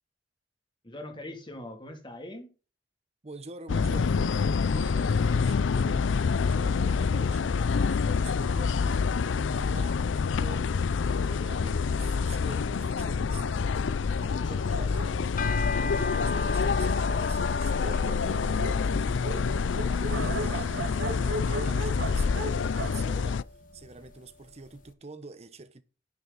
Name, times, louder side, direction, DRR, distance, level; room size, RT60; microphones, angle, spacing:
voice 1, 0.8-2.5 13.8-14.9, left 1 dB, 25° left, 2.7 m, -43 dB
voice 2, 3.2-7.5 7.9-9.0 9.3-10.7 11.2-13.8 14.1-14.2 14.5-15.2 15.8-25.8, right 3 dB, 35° right, 0.9 m, -46 dB
sound 1, 3.7-23.4, left 5 dB, 85° left, 0.5 m, -27 dB
Dog, 13.3-16.3 17.0-17.1 17.4-17.5 17.7-24.1, right 2 dB, 75° right, 1.8 m, -38 dB
sound 2, 15.2-24.6, left 3 dB, 45° left, 1.1 m, -38 dB
10.5 x 9.8 x 4.0 m
head